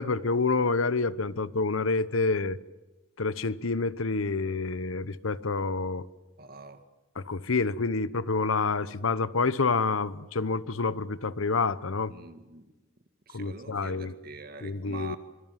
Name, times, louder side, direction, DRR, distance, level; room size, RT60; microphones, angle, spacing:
voice 1, 0.0-2.6 3.2-6.1 7.2-12.1 13.3-14.1 14.6-15.2, left 4 dB, 90° left, 1.0 m, -28 dB
voice 2, 6.4-6.8 12.1-12.7 13.3-15.2, right 3 dB, 50° right, 2.1 m, -45 dB
24.5 x 24.5 x 9.1 m
head